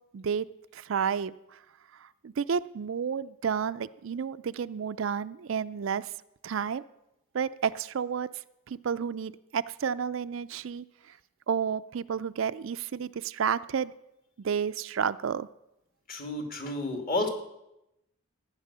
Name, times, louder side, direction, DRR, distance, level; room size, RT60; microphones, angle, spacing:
voice 1, 0.1-0.5 0.7-1.6 1.9-6.1 6.4-6.8 7.3-8.3 8.7-11.2 11.5-13.9 14.4-15.5, right 7 dB, 65° right, 14 dB, 0.4 m, -31 dB
voice 2, 16.1-17.3, left 2 dB, 45° left, 4 dB, 2.3 m, -31 dB
14.5 x 9.8 x 6.7 m, 0.88 s
head